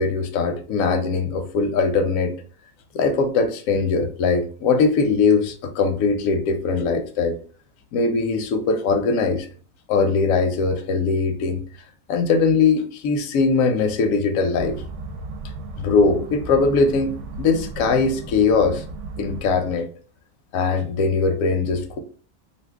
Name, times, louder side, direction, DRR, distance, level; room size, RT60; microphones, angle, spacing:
voice 1, 0.0-2.4 2.9-7.4 7.9-9.5 9.9-11.6 12.1-14.8 15.8-18.8 19.2-19.9 20.5-22.0, left 4 dB, 85° left, 1.0 m, -21 dB
sound 1, 14.6-19.7, right 3 dB, 70° right, 0.8 m, -35 dB
2.7 x 2.5 x 3.4 m
omnidirectional pair, 1.4 m